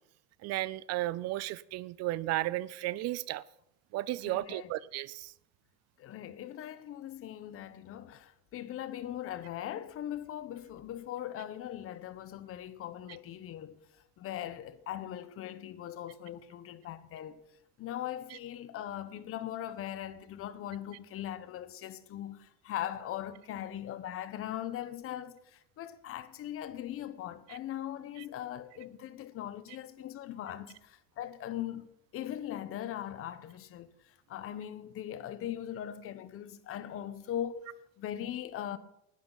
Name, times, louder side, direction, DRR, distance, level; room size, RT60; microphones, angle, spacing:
voice 1, 0.4-3.4 3.9-5.3 27.5-27.6, right 16 dB, 50° right, 0.5 m, -34 dB
voice 2, 4.3-4.7 6.0-13.8 14.2-17.4 17.8-38.8, left 11 dB, 40° left, 1.0 m, -40 dB
19.5 x 12.0 x 4.1 m
cardioid pair, 130°, 33 cm